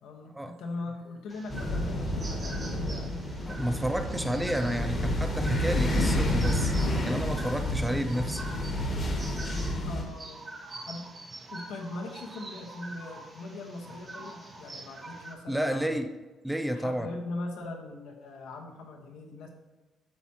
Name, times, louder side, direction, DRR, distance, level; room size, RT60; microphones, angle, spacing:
voice 1, 0.0-3.1 9.8-11.1 11.5-16.0 16.7-19.5, left 2 dB, 80° left, 0 dB, 1.5 m, -40 dB
sound 1, 1.3-15.3, right 2 dB, 20° right, 1.0 m, -45 dB
sound 2, 1.5-10.0, left 1 dB, 25° left, 1.4 m, -29 dB
voice 2, 3.5-8.4 15.5-16.1 16.4-17.1, equal, 5° right, 7 dB, 0.4 m, -31 dB
9.4 x 7.1 x 3.1 m, 1.2 s
cardioid pair, 160°, 0 cm